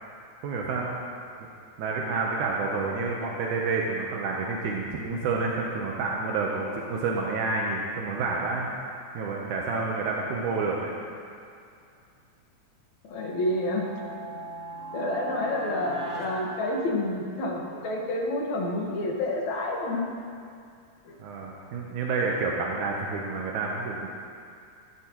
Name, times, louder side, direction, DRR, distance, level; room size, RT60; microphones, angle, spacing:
voice 1, 0.4-1.0 1.8-8.7 9.1-10.9 21.2-24.1, right 4 dB, 85° right, -2 dB, 2.5 m, -29 dB
voice 2, 13.1-13.9 14.9-20.0 21.1-21.2, left 1 dB, 70° left, -2 dB, 2.8 m, -29 dB
sound 1, 13.1-17.4, right 2 dB, 30° right, 1.6 m, -39 dB
17.0 x 13.5 x 3.1 m, 2.4 s
omnidirectional pair, 3.4 m